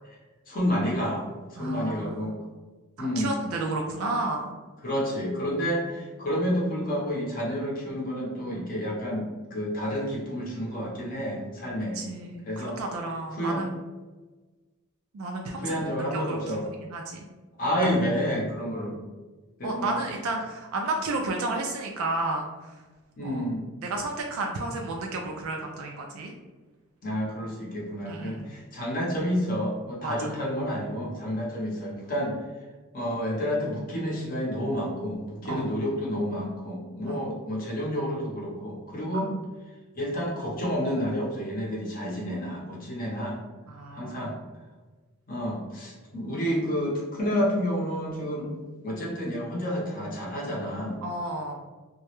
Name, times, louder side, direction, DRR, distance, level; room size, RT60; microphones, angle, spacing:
voice 1, 0.5-1.3 1.6-2.3 3.0-3.3 4.8-12.0 12.5-12.8 13.3-13.6 15.6-16.6 17.6-18.9 19.6-19.9 23.2-23.6 27.0-32.4 32.9-39.3 39.9-43.4 43.9-44.3 45.3-48.5 48.8-51.0, equal, 40° left, -4 dB, 0.6 m, -29 dB
voice 2, 1.6-2.3 3.0-4.5 11.9-13.8 15.1-15.8 16.1-17.2 19.6-22.7 23.2-23.5 23.8-26.3 28.1-28.5 30.0-30.1 35.4-35.8 37.0-37.3 43.6-44.4 51.0-51.5, right 2 dB, 80° right, 1 dB, 0.3 m, -32 dB
2.2 x 2.0 x 2.9 m, 1.3 s
head